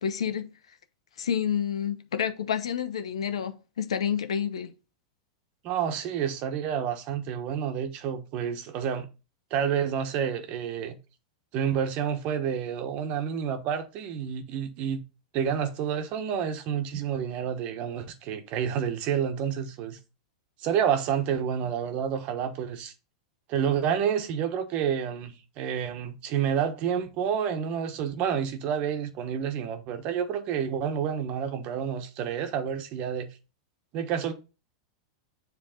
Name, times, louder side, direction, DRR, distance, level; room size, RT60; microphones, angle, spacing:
voice 1, 0.0-0.5 1.2-4.7, left 8 dB, 90° left, 0.9 m, -29 dB
voice 2, 5.6-9.1 9.5-11.0 11.5-15.0 15.3-20.0 20.6-22.9 23.5-33.3 33.9-34.3, right 8 dB, 45° right, 1.2 m, -29 dB
7.5 x 3.4 x 5.0 m
hypercardioid pair, 125°, 3 cm